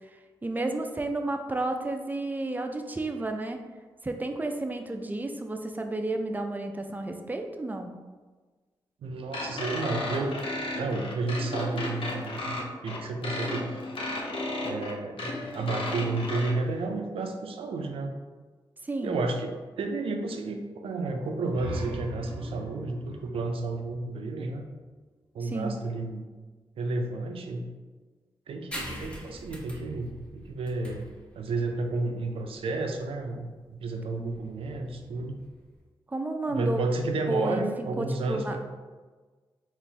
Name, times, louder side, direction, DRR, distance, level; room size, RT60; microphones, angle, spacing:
voice 1, 0.1-3.6 4.0-7.9 18.8-19.2 25.4-25.8 34.2-34.4 36.1-36.8 37.3-37.7 38.0-38.6, right 2 dB, 20° right, 5 dB, 0.4 m, -32 dB
voice 2, 9.0-10.4 10.7-13.7 14.6-18.1 19.0-24.6 25.3-26.2 26.8-27.6 28.5-35.3 36.5-38.6, right 3 dB, 80° right, 5 dB, 0.4 m, -32 dB
sound 1, 9.3-16.5, left 2 dB, 70° left, 0.7 m, -34 dB
sound 2, 21.3-24.7, right 1 dB, 55° right, 0.7 m, -40 dB
sound 3, 28.7-35.8, equal, 10° left, 1.0 m, -44 dB
3.8 x 2.5 x 3.3 m, 1.4 s
cardioid pair, 50°, 9 cm